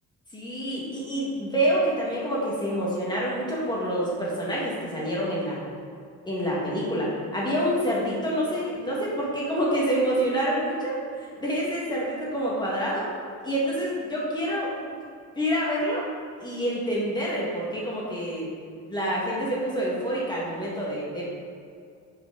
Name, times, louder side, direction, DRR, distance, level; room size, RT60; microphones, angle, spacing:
voice 1, 0.3-5.6 6.3-13.1 13.4-14.7 15.4-16.0 16.4-18.5 18.9-21.2, equal, 15° left, -6 dB, 1.9 m, -27 dB
9.1 x 5.0 x 3.9 m, 2.3 s
cardioid pair, 150°, 31 cm